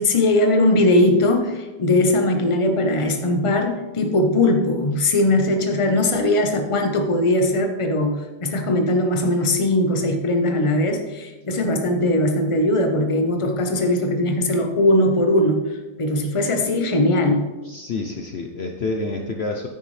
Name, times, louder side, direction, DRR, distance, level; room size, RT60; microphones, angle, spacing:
voice 1, 0.0-15.6 16.0-17.5, left 1 dB, 30° left, 4 dB, 0.6 m, -20 dB
voice 2, 17.6-19.7, left 3 dB, 75° left, 3 dB, 0.5 m, -28 dB
9.5 x 9.3 x 3.3 m, 1.2 s
omnidirectional pair, 2.0 m